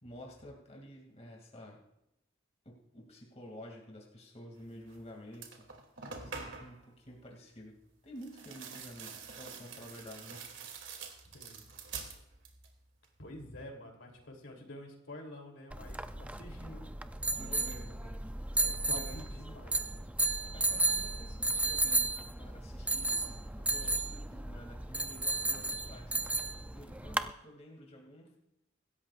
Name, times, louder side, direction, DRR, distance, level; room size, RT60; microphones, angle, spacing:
voice 1, 0.0-1.8 2.6-5.7 6.1-10.5 13.7-13.8 16.6-16.9 17.4-18.6 18.9-19.2 19.5-19.8 20.5-26.2 26.7-28.4, equal, 30° left, -1 dB, 2.5 m, -51 dB
sound 1, 4.9-5.0 5.3-6.8 8.2-12.7 13.0-13.6, right 5 dB, 65° right, 2.7 m, -46 dB
voice 2, 13.2-16.8 18.6-19.8, left 1 dB, 70° left, 1 dB, 3.2 m, -48 dB
sound 2, 15.7-27.3, right 2 dB, 5° right, 0.4 m, -34 dB
25.5 x 13.5 x 2.5 m, 0.84 s
head